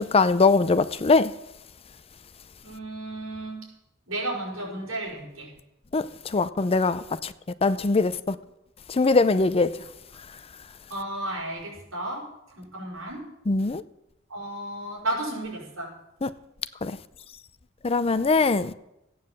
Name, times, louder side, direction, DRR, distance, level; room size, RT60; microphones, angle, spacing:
voice 1, 0.0-1.3 5.9-7.3 7.6-8.4 8.9-9.8 13.5-13.8 16.2-16.3 16.8-17.0 17.8-18.7, left 3 dB, 30° left, 0.5 m, -22 dB
voice 2, 2.6-3.7 4.1-5.5 10.9-12.3 12.6-13.3 14.3-16.0, right 1 dB, 80° right, 5.8 m, -33 dB
14.5 x 9.5 x 7.6 m
head